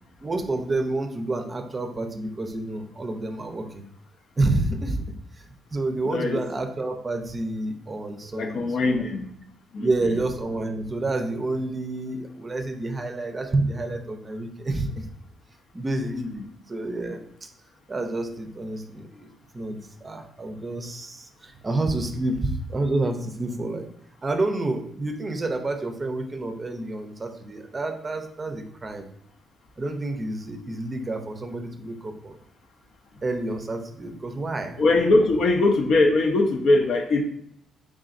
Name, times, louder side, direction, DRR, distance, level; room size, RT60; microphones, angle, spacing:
voice 1, 0.2-3.9 4.4-5.0 5.3-9.0 9.8-15.1 15.7-16.4 16.7-17.5 17.9-19.3 19.5-23.9 24.2-29.1 29.8-32.4 33.2-34.8, right 2 dB, 30° right, 6 dB, 0.5 m, -29 dB
voice 2, 6.0-6.4 8.3-9.3 9.7-10.2 16.0-16.5 34.8-37.2, left 2 dB, 65° left, 4 dB, 0.6 m, -22 dB
3.8 x 3.6 x 2.5 m, 0.71 s
cardioid pair, 90°, 0 cm